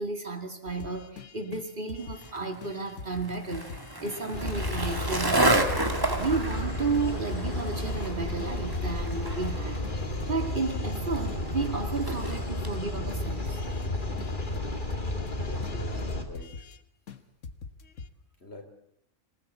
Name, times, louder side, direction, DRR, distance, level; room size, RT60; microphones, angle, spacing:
voice 1, 0.0-3.7 4.0-5.6 6.2-9.8 10.3-13.6, right 4 dB, 45° right, 6 dB, 2.3 m, -33 dB
sound 1, 0.7-2.3 2.6-5.2 5.5-5.6 5.9-8.1 8.4-11.0 11.3-11.4 11.6-13.9 14.2-16.8 17.1-17.2 17.4-18.1, left 5 dB, 80° left, 1.7 m, -44 dB
Skateboard, 2.2-12.8, right 2 dB, 15° right, 2.3 m, -32 dB
sound 2, 4.3-16.2, left 1 dB, 40° left, 2.9 m, -32 dB
voice 2, 15.3-16.6 18.4-18.6, left 1 dB, 60° left, 3 dB, 4.2 m, -45 dB
26.0 x 18.5 x 8.3 m, 0.78 s
omnidirectional pair, 1.3 m